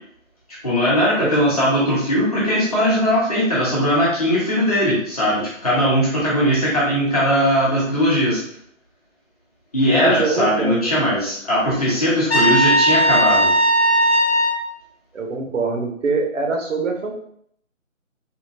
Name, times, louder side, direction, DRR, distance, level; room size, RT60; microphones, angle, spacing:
voice 1, 0.6-8.4 9.7-13.5, equal, 30° left, -8 dB, 1.0 m, -19 dB
voice 2, 1.2-1.5 10.0-10.9 15.1-17.1, right 4 dB, 65° right, 1 dB, 0.7 m, -23 dB
Trumpet, 12.3-14.6, right 1 dB, 50° left, 0.6 m, -17 dB
3.7 x 2.2 x 2.5 m, 0.66 s
figure-of-eight pair, 170°, 40 cm